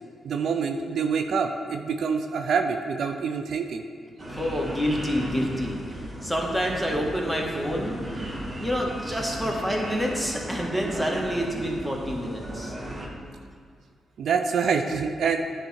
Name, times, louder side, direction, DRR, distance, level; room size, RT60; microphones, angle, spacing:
voice 1, 0.2-3.8 14.2-15.4, right 6 dB, 70° right, 5 dB, 0.4 m, -26 dB
sound 1, 4.2-13.1, equal, 30° right, 1.6 m, -36 dB
voice 2, 4.3-12.7, equal, 5° right, -1 dB, 1.7 m, -28 dB
9.9 x 3.6 x 4.4 m, 2.1 s
supercardioid pair, 45°, 0 cm